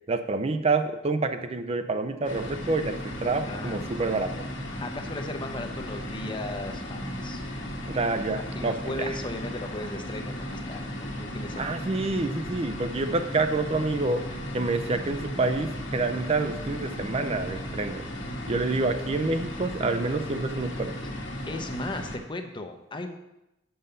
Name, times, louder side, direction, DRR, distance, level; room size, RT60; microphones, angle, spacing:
voice 1, 0.1-4.3 7.9-9.1 11.6-14.2 14.5-18.0 18.5-20.9, right 3 dB, 30° right, 8 dB, 0.5 m, -27 dB
sound 1, 2.2-22.2, equal, 75° left, 1.5 m, -35 dB
voice 2, 3.5-4.0 4.8-7.4 8.4-11.8 21.2-23.2, left 2 dB, 25° left, 6 dB, 0.8 m, -37 dB
6.9 x 5.5 x 6.7 m, 0.92 s
head